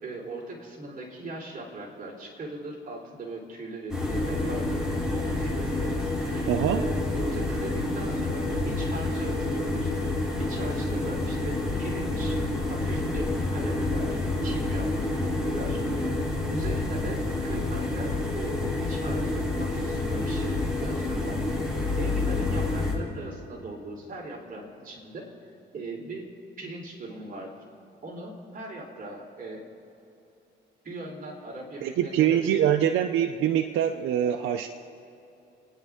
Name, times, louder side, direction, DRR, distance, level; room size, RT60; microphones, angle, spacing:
voice 1, 0.0-9.9 10.4-16.2 16.5-21.7 22.0-25.3 25.7-26.3 26.6-27.5 28.0-29.6 30.8-32.7, right 2 dB, 45° right, -1 dB, 3.8 m, -39 dB
sound 1, 3.9-22.9, left 2 dB, 5° right, 3.5 m, -28 dB
voice 2, 6.5-6.8 31.8-34.7, right 10 dB, 85° right, 5 dB, 0.7 m, -24 dB
29.5 x 10.0 x 3.6 m, 2.9 s
cardioid pair, 90°, 20 cm